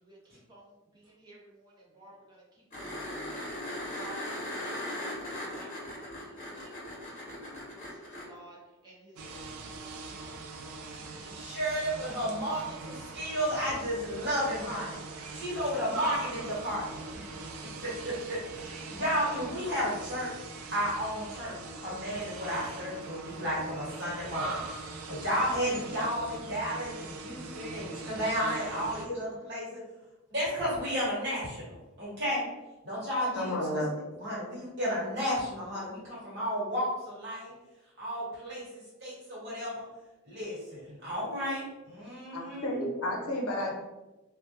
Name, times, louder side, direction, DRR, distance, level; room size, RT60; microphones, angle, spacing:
voice 1, 0.0-2.4 2.7-2.9 3.2-3.4 3.9-5.2 5.4-7.0 7.3-8.0 8.3-8.6 8.8-9.5 9.8-10.3, right 2 dB, 20° right, -5 dB, 0.6 m, -53 dB
sound 1, 2.7-8.2 10.9-11.0, left 1 dB, 35° left, 0.8 m, -38 dB
sound 2, 9.2-29.1, right 3 dB, 75° right, 0.3 m, -41 dB
voice 2, 11.3-15.0 15.3-17.4 17.8-20.3 20.7-29.8 30.3-32.4 32.8-33.9 34.1-37.5 38.0-38.6 39.0-39.8 40.2-42.7, equal, 50° right, -8 dB, 1.2 m, -33 dB
voice 3, 33.3-33.9 42.3-43.7, left 1 dB, 80° left, 0 dB, 0.6 m, -32 dB
2.2 x 2.1 x 2.7 m, 1.1 s
head